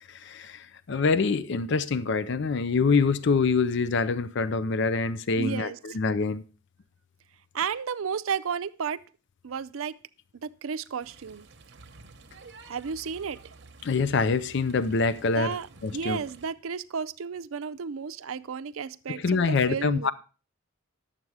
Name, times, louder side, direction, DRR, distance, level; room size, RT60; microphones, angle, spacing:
voice 1, 0.1-6.4 13.8-15.5 15.8-16.2 19.1-20.1, left 4 dB, 60° left, 0.5 m, -25 dB
voice 2, 5.4-5.8 7.5-9.0 9.4-10.0 10.4-11.5 12.7-13.4 15.4-15.7 15.9-20.1, right 6 dB, 85° right, 0.5 m, -32 dB
sound 1, 11.0-16.5, right 3 dB, 55° right, 1.0 m, -50 dB
11.0 x 7.4 x 4.7 m
head